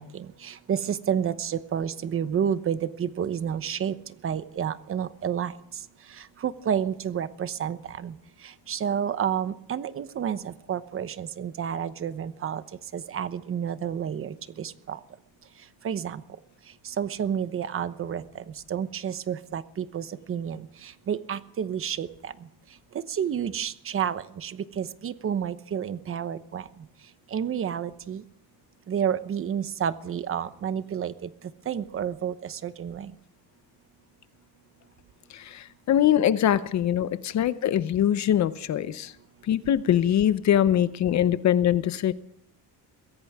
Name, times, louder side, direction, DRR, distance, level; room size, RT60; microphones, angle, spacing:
voice 1, 0.0-3.9 4.2-5.5 6.2-8.1 8.4-12.6 12.9-15.0 15.8-16.2 16.8-22.3 23.1-26.7 27.3-28.2 28.9-31.3 31.7-33.1, right 8 dB, 35° right, 13 dB, 0.9 m, -30 dB
voice 2, 35.3-39.1 39.5-42.1, left 10 dB, 45° left, 14 dB, 0.8 m, -23 dB
23.0 x 16.5 x 3.6 m, 0.75 s
cardioid pair, 160°, 39 cm